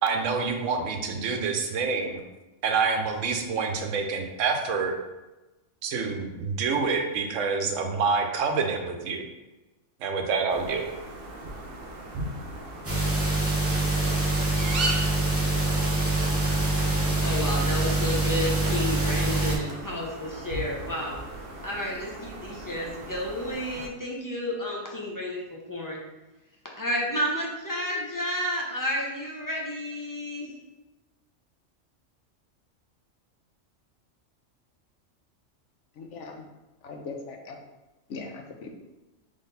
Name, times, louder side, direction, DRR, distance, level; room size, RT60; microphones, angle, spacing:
voice 1, 0.0-2.2 2.6-4.9 5.8-9.2 10.0-10.9, right 5 dB, 80° right, 4 dB, 1.0 m, -27 dB
sound 1, 10.5-23.9, right 1 dB, 55° right, 0.9 m, -38 dB
sound 2, 12.8-19.6, right 2 dB, 15° right, 0.8 m, -25 dB
voice 2, 17.0-21.2 21.6-26.0 26.8-30.5, left 1 dB, 20° left, -3 dB, 0.6 m, -31 dB
voice 3, 36.0-36.4 36.8-37.6 38.1-38.7, left 4 dB, 70° left, 3 dB, 0.9 m, -39 dB
3.8 x 3.5 x 4.0 m, 1.1 s
omnidirectional pair, 1.3 m